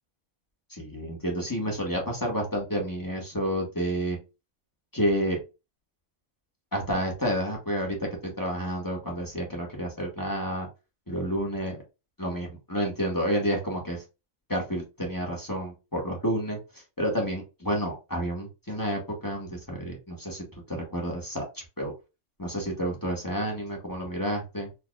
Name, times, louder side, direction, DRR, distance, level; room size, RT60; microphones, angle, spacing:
voice 1, 0.7-4.2 4.9-5.4 6.7-10.7 11.1-11.8 12.2-14.0 14.5-21.9 22.4-24.7, equal, 15° left, -1 dB, 0.9 m, -30 dB
4.0 x 2.8 x 2.3 m, 0.28 s
omnidirectional pair, 1.5 m